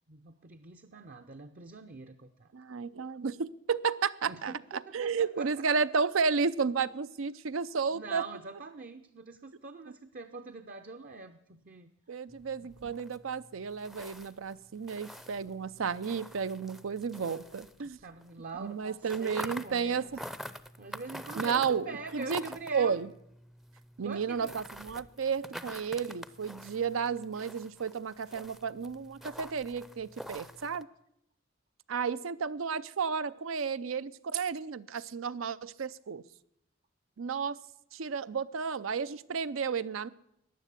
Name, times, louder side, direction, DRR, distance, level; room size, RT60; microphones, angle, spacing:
voice 1, 0.1-2.5 4.3-5.5 7.9-11.9 12.6-13.0 17.8-20.1 20.8-23.0 24.0-24.5, right 3 dB, 45° right, 8 dB, 0.7 m, -44 dB
voice 2, 2.5-8.2 12.1-18.0 18.5-20.2 21.4-22.4 22.7-23.1 24.0-30.9 31.9-36.2 37.2-37.6 37.9-40.1, right 5 dB, 85° right, 16 dB, 0.6 m, -32 dB
sound 1, 12.3-18.3 18.6-30.8, equal, ahead, 0.5 m, -47 dB
14.5 x 10.0 x 8.3 m, 0.78 s
head